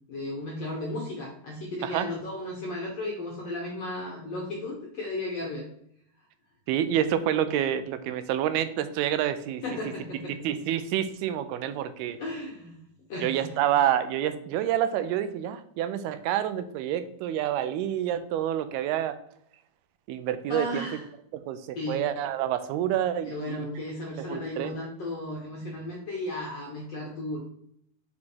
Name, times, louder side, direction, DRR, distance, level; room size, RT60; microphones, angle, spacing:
voice 1, 0.1-5.6 9.6-10.5 12.2-12.8 13.1-13.5 20.5-21.0 21.7-22.0 23.2-27.5, left 1 dB, 70° left, -2 dB, 1.5 m, -35 dB
voice 2, 6.7-9.6 10.4-12.2 13.2-19.1 20.1-20.9 21.3-23.7 24.2-24.7, right 10 dB, 90° right, 11 dB, 2.6 m, -28 dB
6.7 x 4.2 x 4.2 m, 0.71 s
omnidirectional pair, 4.4 m